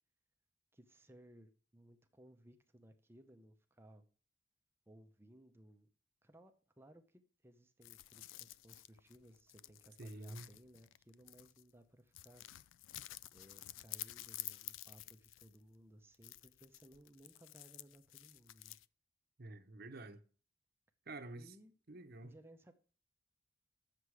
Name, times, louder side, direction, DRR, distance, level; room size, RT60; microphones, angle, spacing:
voice 1, 0.7-4.0 4.9-5.9 6.2-12.5 13.3-18.8 21.3-21.7 22.2-22.7, right 1 dB, 10° right, 0.7 m, -61 dB
sound 1, 7.8-11.7 12.1-15.7 16.1-18.9, left 15 dB, 90° left, 0.3 m, -51 dB
voice 2, 10.0-10.5 19.4-20.2 21.1-21.5 21.9-22.3, right 2 dB, 50° right, 0.9 m, -49 dB
8.0 x 6.8 x 4.8 m
head